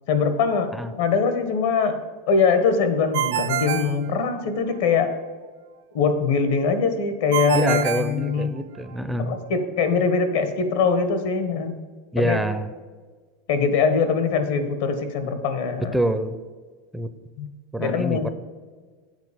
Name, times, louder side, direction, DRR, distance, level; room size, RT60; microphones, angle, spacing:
voice 1, 0.1-0.7 1.0-2.0 2.3-5.1 5.9-8.5 9.2-11.8 12.2-12.4 13.5-16.0 17.4-17.5 17.8-18.3, left 5 dB, 75° left, 8 dB, 1.3 m, -22 dB
Ringtone, 3.1-4.8 7.3-8.9, right 11 dB, 80° right, 0.6 m, -27 dB
voice 2, 7.5-9.4 12.1-12.7 15.8-16.4 16.9-17.1 17.7-18.3, right 1 dB, ahead, 10 dB, 0.4 m, -26 dB
8.1 x 4.4 x 6.9 m, 1.5 s
supercardioid pair, 145°, 0 cm